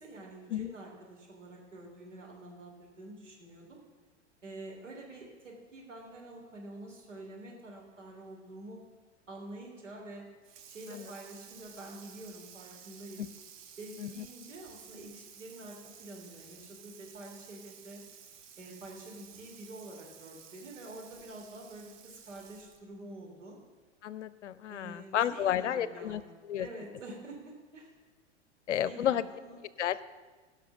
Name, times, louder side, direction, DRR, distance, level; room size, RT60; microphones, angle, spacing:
voice 1, 0.0-3.8 4.4-8.8 9.3-10.2 10.7-13.2 13.8-18.0 18.6-23.6 24.7-27.9 28.7-29.6, right 2 dB, 85° right, -1 dB, 3.2 m, -47 dB
Water tap faucet / Sink (filling or washing), 10.4-22.9, right 8 dB, 35° right, 1.0 m, -53 dB
voice 2, 24.0-26.7 28.7-29.2 29.8-30.0, left 10 dB, 75° left, 16 dB, 0.6 m, -32 dB
17.0 x 5.8 x 6.0 m, 1.3 s
figure-of-eight pair, 95°, 36 cm